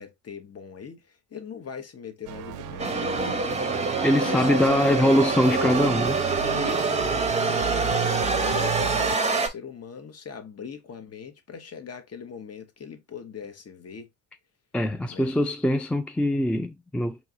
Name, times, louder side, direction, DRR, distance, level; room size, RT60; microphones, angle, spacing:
voice 1, 0.0-3.4 4.2-5.8 6.4-14.1 15.1-15.3, left 7 dB, 35° left, 1.1 m, -39 dB
sound 1, 2.3-9.2, right 12 dB, 50° right, 0.5 m, -34 dB
sound 2, 2.8-9.5, right 3 dB, 15° right, 0.9 m, -26 dB
voice 2, 4.0-6.2 14.7-17.2, left 1 dB, 5° left, 0.3 m, -23 dB
4.5 x 3.0 x 2.7 m
hypercardioid pair, 55°, 41 cm